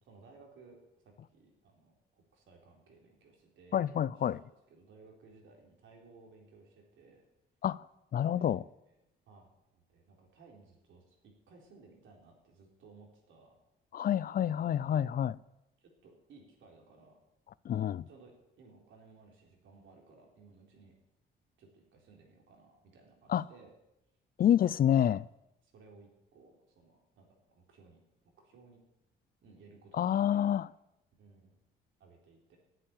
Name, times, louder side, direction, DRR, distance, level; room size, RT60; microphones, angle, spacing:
voice 1, 0.0-0.8 1.0-1.9 2.3-7.2 8.3-13.5 14.8-15.2 15.8-17.2 18.0-20.9 21.6-23.7 25.0-25.2 25.6-28.0 28.4-28.8 29.4-30.4 31.2-31.6 32.0-32.6, right 4 dB, 75° right, 4.0 m, -59 dB
voice 2, 3.7-4.4 7.6-7.8 8.1-8.6 13.9-15.4 17.7-18.0 23.3-23.4 24.4-25.3 30.0-30.7, left 10 dB, 45° left, 0.4 m, -28 dB
11.0 x 8.9 x 9.0 m
cardioid pair, 90°, 20 cm